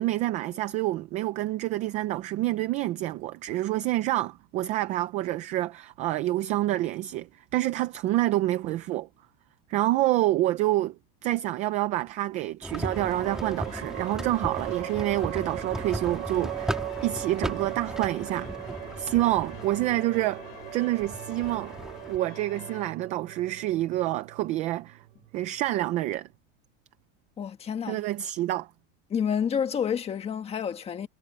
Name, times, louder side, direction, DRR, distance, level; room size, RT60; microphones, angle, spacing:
voice 1, 0.0-9.1 9.7-11.0 11.2-18.5 19.0-20.4 20.7-21.8 22.1-25.0 25.3-26.3 27.9-28.7, right 15 dB, 20° right, 0.4 m, -27 dB
sound 1, 12.6-22.2, right 1 dB, ahead, 2.4 m, -37 dB
sound 2, 12.7-22.9, left 26 dB, 55° left, 4.1 m, -48 dB
sound 3, 12.9-25.8, right 18 dB, 85° right, 5.5 m, -39 dB
voice 2, 27.4-28.0 29.1-31.1, left 7 dB, 15° left, 1.6 m, -29 dB
supercardioid pair, 175°, 36 cm